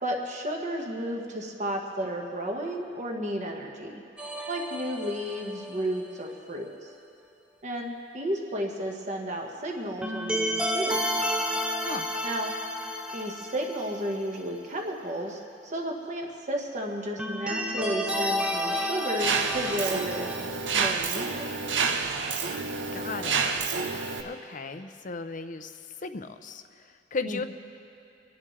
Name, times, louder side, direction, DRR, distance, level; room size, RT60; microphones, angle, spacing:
voice 1, 0.0-4.0 4.5-6.7 7.6-11.1 12.2-12.5 13.1-21.5 27.2-27.5, equal, 40° right, 1 dB, 1.5 m, -33 dB
sound 1, 4.2-6.0 10.0-14.4 14.7-14.8 17.2-20.5, equal, 5° right, 0.7 m, -31 dB
Mechanisms, 19.2-24.2, right 5 dB, 85° right, 0.8 m, -29 dB
voice 2, 22.9-23.5 24.2-25.7 26.0-26.6 27.1-27.4, left 4 dB, 45° left, 9 dB, 0.6 m, -35 dB
25.5 x 11.0 x 3.3 m, 2.6 s
head